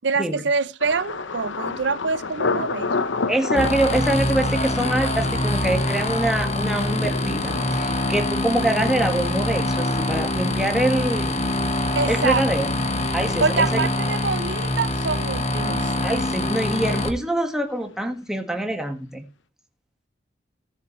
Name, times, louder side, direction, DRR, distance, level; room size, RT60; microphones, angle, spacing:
voice 1, 0.0-2.9 11.9-12.4 13.4-15.9, right 4 dB, 65° right, 0.7 m, -25 dB
Thunder, 0.8-16.6 16.8-17.5 17.9-18.1, left 4 dB, 80° left, 0.8 m, -33 dB
voice 2, 3.3-11.4 12.1-12.7 13.1-13.9 16.0-19.2, right 1 dB, 5° right, 1.6 m, -24 dB
sound 1, 3.5-17.1, left 1 dB, 35° left, 1.2 m, -24 dB
17.5 x 7.1 x 3.1 m
head